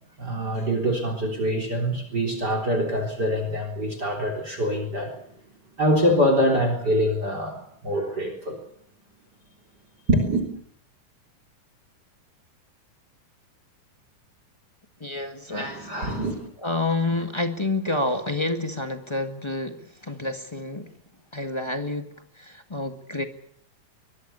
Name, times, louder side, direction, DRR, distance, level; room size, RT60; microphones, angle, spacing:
voice 1, 0.2-5.2 5.8-8.6 10.1-10.4 15.5-16.5, equal, 30° right, 7 dB, 4.1 m, -24 dB
voice 2, 15.0-15.8 16.6-20.9 21.3-22.1 22.4-23.2, left 2 dB, 15° left, 6 dB, 0.8 m, -28 dB
23.5 x 22.5 x 6.9 m, 0.68 s
omnidirectional pair, 3.7 m